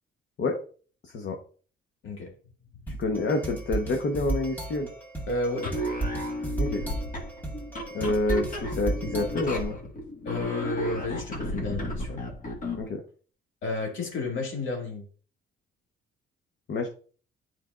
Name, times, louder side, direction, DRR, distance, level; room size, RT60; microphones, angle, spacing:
voice 1, 1.0-1.4 2.9-4.9 6.6-6.8 7.9-9.8 12.7-13.0 16.7-16.9, left 2 dB, 60° left, 1.0 m, -28 dB
sound 1, 2.9-9.7, right 2 dB, 10° left, 1.8 m, -34 dB
voice 2, 5.3-5.7 10.2-12.3 13.6-15.0, left 3 dB, 75° left, 2.0 m, -32 dB
sound 2, 5.5-12.9, equal, 40° left, 1.6 m, -33 dB
9.3 x 4.4 x 2.4 m
cardioid pair, 90°, 20 cm